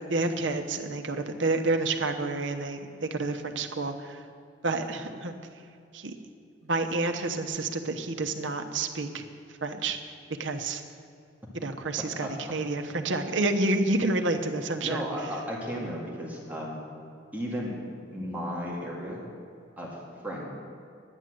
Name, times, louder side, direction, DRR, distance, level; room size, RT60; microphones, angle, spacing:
voice 1, 0.1-4.2 4.6-5.3 5.9-6.1 6.7-9.2 9.6-10.0 10.4-10.8 11.5-15.0, right 2 dB, 80° right, 5 dB, 1.0 m, -29 dB
voice 2, 12.2-12.5 14.8-16.8 17.3-17.8 18.1-19.2 19.8-20.0 20.2-20.5, equal, 10° right, -4 dB, 2.0 m, -34 dB
11.0 x 9.9 x 7.8 m, 2.5 s
head